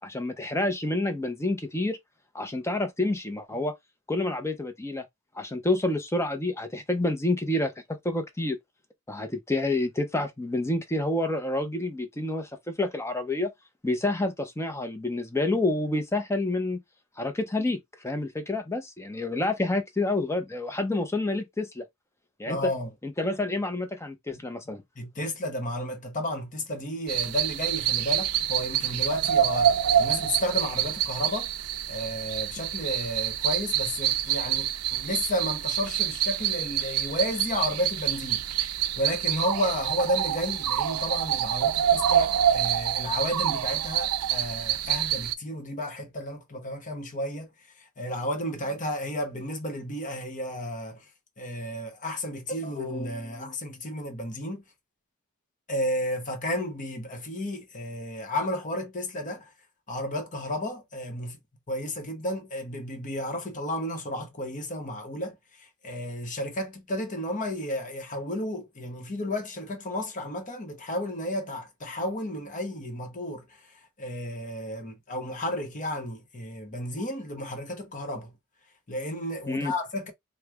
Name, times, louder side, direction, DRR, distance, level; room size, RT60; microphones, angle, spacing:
voice 1, 0.0-2.0 2.3-3.7 4.1-5.0 5.4-7.7 8.0-8.6 9.1-13.5 13.8-16.8 17.2-21.8 22.4-22.7 23.0-24.8 79.5-79.7, left 2 dB, 15° left, 0.6 m, -28 dB
voice 2, 22.5-22.9 24.3-24.4 24.7-31.5 31.9-38.4 39.0-47.5 48.0-51.0 51.4-54.6 55.7-59.5 59.9-61.4 61.7-65.4 65.8-73.5 74.0-78.3 78.9-80.1, left 1 dB, 35° left, 0.9 m, -32 dB
sound 1, 27.1-45.3, right 10 dB, 90° right, 0.4 m, -27 dB
3.1 x 2.1 x 3.4 m
head